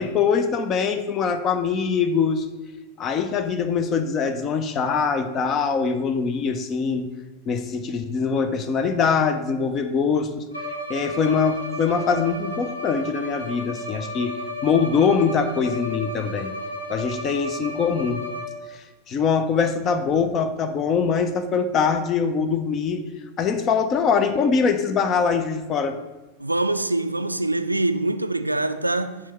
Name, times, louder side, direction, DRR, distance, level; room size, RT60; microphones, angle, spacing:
voice 1, 0.0-2.5 3.0-7.1 7.5-10.3 10.9-16.5 16.9-18.2 18.7-23.1 23.4-26.0, left 5 dB, 30° left, 0.6 m, -23 dB
Bowed string instrument, 10.5-18.8, left 1 dB, 80° left, 0.9 m, -33 dB
voice 2, 26.4-29.2, right 2 dB, 85° right, 0.3 m, -24 dB
4.6 x 4.2 x 5.8 m
figure-of-eight pair, 90°, 0 cm